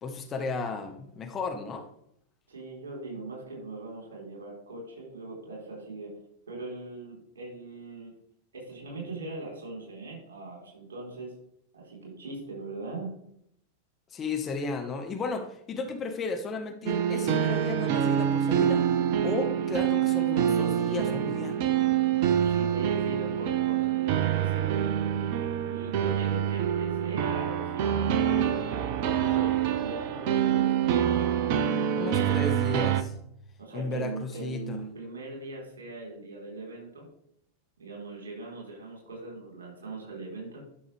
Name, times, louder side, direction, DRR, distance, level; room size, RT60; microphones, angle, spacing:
voice 1, 0.0-1.8 14.1-18.8 19.2-21.6 32.0-33.1 33.7-34.8, left 3 dB, 25° left, 5 dB, 1.0 m, -34 dB
voice 2, 2.5-6.1 6.5-8.1 8.5-11.3 11.7-13.1 22.2-28.1 28.9-31.2 33.6-37.0 37.8-40.6, right 3 dB, 65° right, -1 dB, 3.8 m, -40 dB
sound 1, 16.9-33.0, right 9 dB, 45° right, 0.7 m, -26 dB
11.0 x 6.1 x 3.3 m, 0.71 s
figure-of-eight pair, 90°, 0 cm